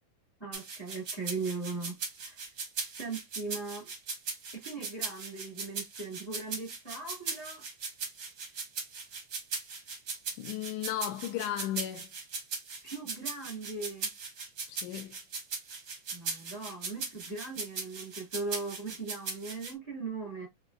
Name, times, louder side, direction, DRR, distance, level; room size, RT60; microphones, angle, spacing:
voice 1, 0.4-2.0 2.2-2.4 3.0-3.9 4.5-7.6 12.8-14.1 16.1-20.5, right 3 dB, 20° left, 0.7 m, -39 dB
sound 1, 0.5-19.7, right 4 dB, 75° right, 0.9 m, -38 dB
voice 2, 10.4-12.1 14.7-15.2, left 12 dB, 80° left, 1.8 m, -35 dB
5.9 x 2.6 x 2.2 m
omnidirectional pair, 3.8 m